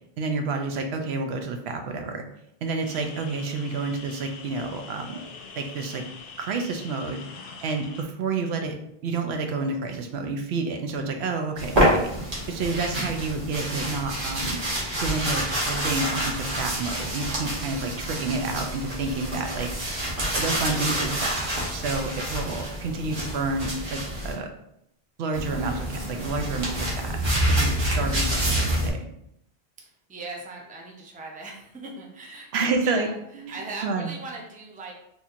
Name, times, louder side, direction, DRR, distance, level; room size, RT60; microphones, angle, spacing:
voice 1, 0.2-2.2 2.6-5.2 5.6-6.0 6.4-7.2 7.6-8.8 9.0-12.1 12.5-14.6 15.0-19.7 20.3-24.5 25.2-27.2 27.5-29.1 32.5-33.1 33.3-34.1, right 3 dB, 85° right, 4 dB, 0.8 m, -29 dB
sound 1, 2.8-8.0, left 4 dB, 70° left, 0.7 m, -43 dB
sound 2, 11.6-24.3 25.3-28.9, right 1 dB, 55° right, 1.2 m, -27 dB
voice 2, 29.8-33.2 33.5-34.9, right 3 dB, 10° right, -1 dB, 0.4 m, -39 dB
4.2 x 2.8 x 2.5 m, 0.77 s
omnidirectional pair, 1.0 m